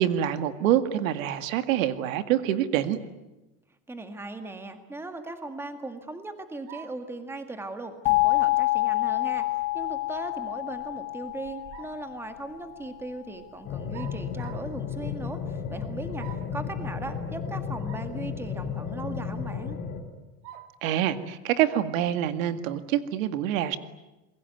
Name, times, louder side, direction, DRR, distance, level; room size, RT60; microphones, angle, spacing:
voice 1, 0.0-3.0 20.8-23.8, right 11 dB, 90° right, 10 dB, 2.2 m, -26 dB
voice 2, 3.9-9.5 9.7-16.3 16.5-19.8, right 2 dB, 5° right, 7 dB, 1.8 m, -38 dB
sound 1, 6.7-7.1 9.3-9.6 11.4-12.0 13.9-14.7 16.2-16.6 17.8-18.1 18.6-18.7 20.4-20.8, right 12 dB, 65° right, 2.6 m, -46 dB
sound 2, 8.1-12.8, left 22 dB, 60° left, 2.4 m, -27 dB
sound 3, 13.6-20.0, left 7 dB, 25° left, 3.4 m, -33 dB
28.0 x 21.5 x 9.4 m, 1.0 s
supercardioid pair, 165°, 39 cm